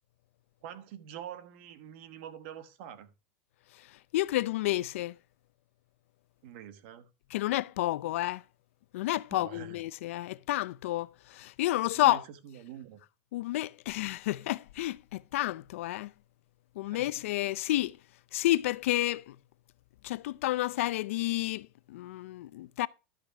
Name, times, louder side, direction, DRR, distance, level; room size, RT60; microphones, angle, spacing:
voice 1, 0.6-3.1 6.4-7.1 9.3-9.8 11.9-13.0 16.8-17.1, right 10 dB, 60° right, 1.3 m, -45 dB
voice 2, 4.1-5.2 7.3-8.4 8.9-12.2 13.3-16.1 16.8-18.0 18.3-19.4 20.0-22.9, left 16 dB, 85° left, 0.5 m, -30 dB
11.5 x 5.7 x 4.7 m
supercardioid pair, 160°, 7 cm